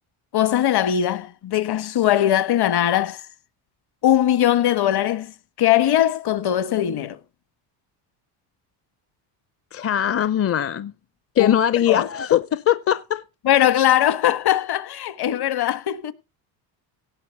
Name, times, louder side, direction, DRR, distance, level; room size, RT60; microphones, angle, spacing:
voice 1, 0.3-3.2 4.0-7.2 11.4-11.6 11.9-12.1 13.4-16.1, left 11 dB, 50° left, 1.5 m, -20 dB
voice 2, 9.7-10.9 11.4-13.2, left 10 dB, 30° left, 0.6 m, -21 dB
17.5 x 6.9 x 5.8 m
cardioid pair, 105°, 50 cm